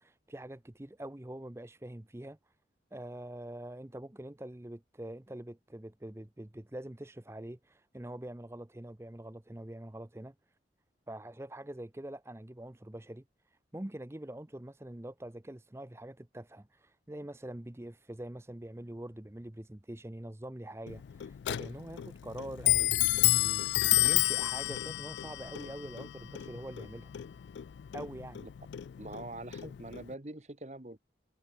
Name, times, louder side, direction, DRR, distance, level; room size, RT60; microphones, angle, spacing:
voice 1, 0.0-2.5 2.9-10.3 11.1-27.1 27.9-28.4, right 1 dB, 15° right, 0.6 m, -44 dB
Clock, 20.9-30.1, left 16 dB, 85° left, 0.3 m, -31 dB
voice 2, 29.0-31.0, right 2 dB, 40° right, 1.3 m, -44 dB
head